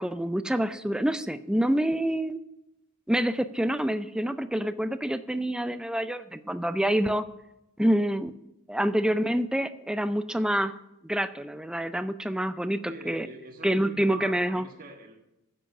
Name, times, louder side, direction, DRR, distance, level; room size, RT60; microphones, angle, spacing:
voice 1, 0.0-2.4 3.1-7.2 7.8-8.4 8.7-10.7 11.0-13.3 13.6-14.7, right 1 dB, 5° right, 12 dB, 0.4 m, -27 dB
voice 2, 12.9-15.2, right 2 dB, 40° right, 0 dB, 1.5 m, -44 dB
10.0 x 7.6 x 6.0 m, 0.90 s
head